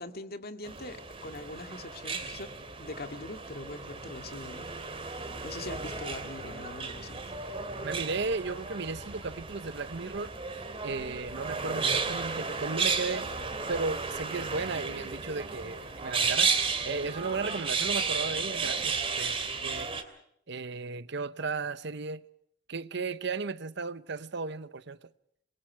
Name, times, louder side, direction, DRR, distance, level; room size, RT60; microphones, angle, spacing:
voice 1, 0.0-2.5 2.8-7.2, left 2 dB, 55° left, 2.1 m, -42 dB
sound 1, 0.6-20.0, right 5 dB, 30° right, 3.0 m, -33 dB
voice 2, 7.8-13.3 13.7-16.5 16.8-19.9 20.5-22.2 22.7-25.1, right 4 dB, 65° right, 0.9 m, -35 dB
28.0 x 22.5 x 4.6 m
head